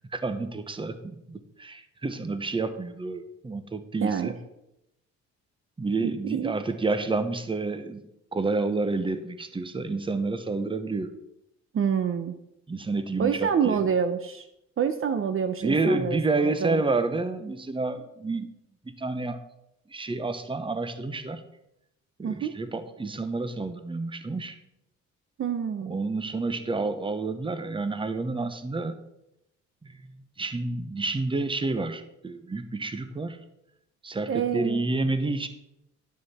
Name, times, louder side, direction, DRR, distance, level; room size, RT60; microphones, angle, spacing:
voice 1, 0.1-4.4 5.8-11.1 12.7-13.8 15.6-18.5 18.8-19.4 19.9-21.4 22.2-24.6 25.8-29.0 29.8-30.0 30.4-33.4 34.0-35.5, right 3 dB, 15° right, 10 dB, 0.9 m, -29 dB
voice 2, 4.0-4.3 6.0-6.5 11.7-12.4 13.2-14.5 14.8-16.8 22.2-22.6 25.4-26.0 34.3-34.8, right 7 dB, 45° right, 9 dB, 0.7 m, -27 dB
11.0 x 6.3 x 4.2 m, 0.84 s
cardioid pair, 90°, 30 cm